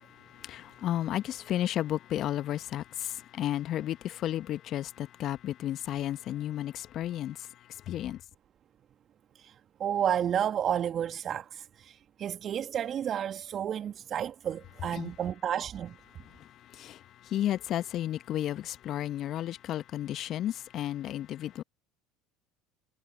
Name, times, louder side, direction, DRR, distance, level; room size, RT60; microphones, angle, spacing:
voice 1, 0.2-7.5 7.9-8.2 15.0-15.1 16.4-21.6, left 12 dB, 50° left, 1.4 m, -33 dB
voice 2, 9.8-15.9, right 9 dB, 40° right, 1.9 m, -31 dB
figure-of-eight pair, 70°, 0 cm